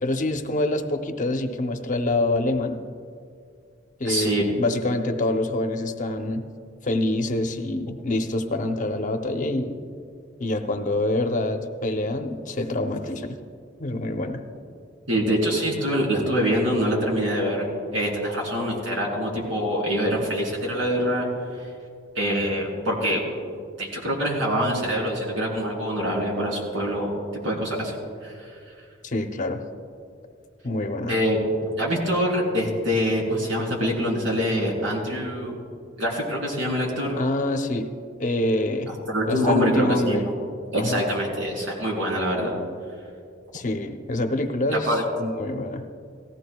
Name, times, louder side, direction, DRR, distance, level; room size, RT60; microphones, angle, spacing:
voice 1, 0.0-2.8 4.0-6.4 6.8-9.8 10.4-13.4 13.8-14.4 29.0-29.6 30.6-31.1 37.1-37.9 38.2-38.9 39.3-40.3 40.7-41.0 43.5-45.8, left 2 dB, 40° left, 5 dB, 0.8 m, -26 dB
voice 2, 4.0-4.4 15.1-21.3 22.1-23.2 23.8-27.1 27.4-27.9 28.2-28.3 31.1-31.4 31.8-35.5 36.0-37.2 38.9-40.2 40.7-42.5 44.9-45.0, equal, 85° right, -2 dB, 3.4 m, -25 dB
18.0 x 15.0 x 2.3 m, 2.3 s
head